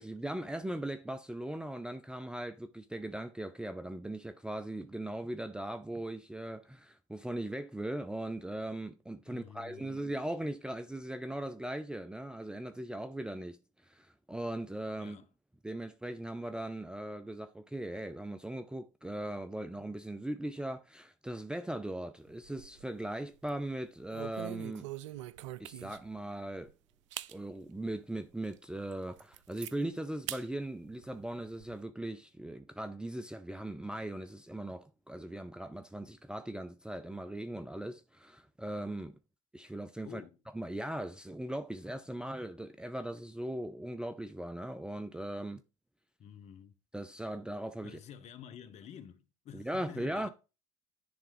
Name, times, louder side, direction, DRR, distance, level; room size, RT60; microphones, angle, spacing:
voice 1, 0.0-15.2 15.6-24.9 25.6-26.7 27.3-39.1 39.5-40.2 40.5-45.6 46.9-48.0 49.5-50.3, right 1 dB, 5° right, 0.5 m, -39 dB
voice 2, 9.3-10.0 15.0-15.3 40.0-40.4 46.2-46.7 47.8-50.3, left 8 dB, 40° left, 1.0 m, -50 dB
sound 1, 22.3-23.0 23.3-23.6 24.1-26.2 26.7-26.8 27.1-27.4 27.9-28.0 28.5-28.6 28.9-29.7 30.3-30.4 30.8-31.8, right 14 dB, 65° right, 0.4 m, -43 dB
10.5 x 3.6 x 4.8 m
figure-of-eight pair, 65°, 17 cm